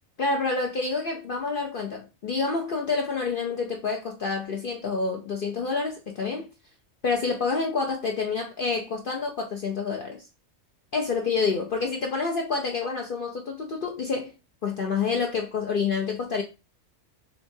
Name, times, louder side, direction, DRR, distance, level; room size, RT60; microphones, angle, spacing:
voice 1, 0.2-6.5 7.0-10.3 10.9-14.3 14.6-16.4, left 4 dB, 55° left, 0.6 m, -28 dB
6.9 x 2.4 x 2.6 m
omnidirectional pair, 1.4 m